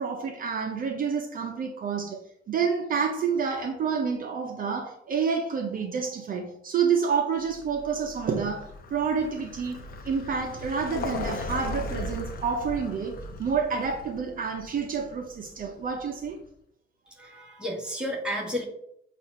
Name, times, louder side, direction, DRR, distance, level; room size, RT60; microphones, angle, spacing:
voice 1, 0.0-2.2 2.5-16.4, right 6 dB, 45° right, 0.6 m, -29 dB
Vehicle, 7.5-16.3, left 2 dB, 50° left, 0.8 m, -38 dB
voice 2, 17.1-18.6, equal, 5° right, 1.5 m, -32 dB
7.4 x 2.5 x 5.4 m
cardioid pair, 155°, 20 cm